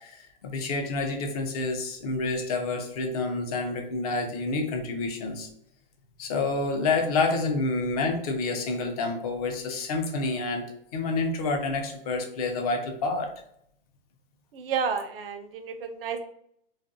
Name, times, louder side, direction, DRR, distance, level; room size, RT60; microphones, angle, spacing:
voice 1, 0.0-5.5 6.2-10.6 10.9-13.3, left 3 dB, 40° left, 4 dB, 0.5 m, -28 dB
voice 2, 14.5-16.2, right 6 dB, 75° right, 7 dB, 0.6 m, -31 dB
2.5 x 2.3 x 2.5 m, 0.71 s
hypercardioid pair, 145°, 29 cm